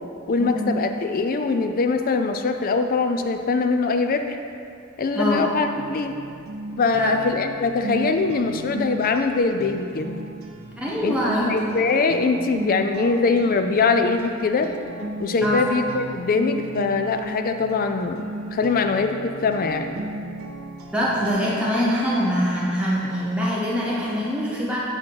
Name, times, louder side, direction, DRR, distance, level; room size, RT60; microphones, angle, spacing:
voice 1, 0.3-4.4 5.0-6.1 6.8-10.2 11.0-14.7 15.2-18.2 18.5-19.9, left 4 dB, 40° left, 6 dB, 0.4 m, -22 dB
voice 2, 5.1-5.5 7.0-7.2 10.8-11.6 15.4-15.7 20.9-24.8, equal, 5° right, -6 dB, 0.7 m, -23 dB
sound 1, 5.7-21.3, right 2 dB, 65° right, 0.7 m, -35 dB
8.6 x 4.4 x 4.5 m, 2.4 s
head